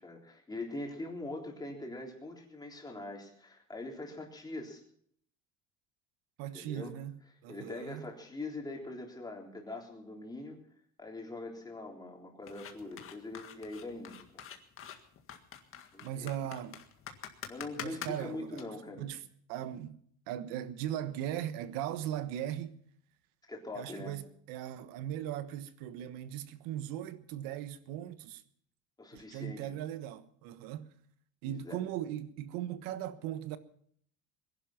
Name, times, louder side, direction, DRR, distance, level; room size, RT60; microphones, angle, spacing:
voice 1, 0.0-4.8 6.5-6.9 7.5-10.6 11.0-14.4 15.9-16.3 17.5-19.0 23.5-24.2 29.0-29.7 31.4-31.8, left 2 dB, 10° left, 3.7 m, -43 dB
voice 2, 6.4-8.1 16.0-16.8 17.8-19.2 19.5-20.0 20.3-22.8 23.7-28.4 29.1-30.9 31.4-33.6, right 11 dB, 90° right, 1.4 m, -39 dB
sound 1, 12.5-18.6, left 9 dB, 40° left, 1.8 m, -46 dB
21.0 x 11.5 x 5.8 m
cardioid pair, 150°, 33 cm